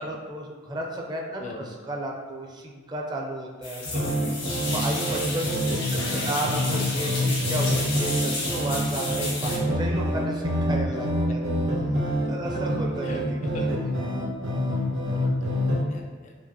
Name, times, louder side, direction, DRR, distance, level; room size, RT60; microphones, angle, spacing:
voice 1, 0.0-3.8 4.7-11.4 12.0-13.7, right 1 dB, 20° right, 0 dB, 0.5 m, -33 dB
sound 1, 3.6-9.6, left 2 dB, 85° left, 1.4 m, -32 dB
sound 2, 3.8-15.8, equal, 65° right, 0.8 m, -27 dB
voice 2, 3.9-4.3 5.8-6.3 13.0-13.6 15.1-15.5 15.9-16.4, left 2 dB, 40° left, 2 dB, 0.4 m, -39 dB
5.0 x 2.4 x 2.7 m, 1.5 s
head